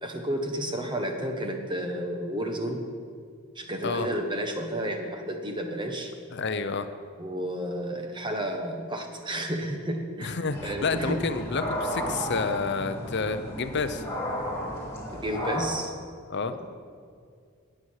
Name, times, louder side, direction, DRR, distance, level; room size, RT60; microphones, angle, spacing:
voice 1, 0.0-2.8 3.5-6.1 7.2-11.2 15.1-15.9 16.6-16.7, right 1 dB, 20° right, 3 dB, 1.3 m, -31 dB
voice 2, 6.3-6.9 10.2-14.0 16.3-16.5, left 4 dB, 50° left, 9 dB, 0.7 m, -29 dB
sound 1, 10.5-15.7, equal, 10° left, 2.4 m, -33 dB
19.0 x 7.7 x 6.4 m, 2.2 s
head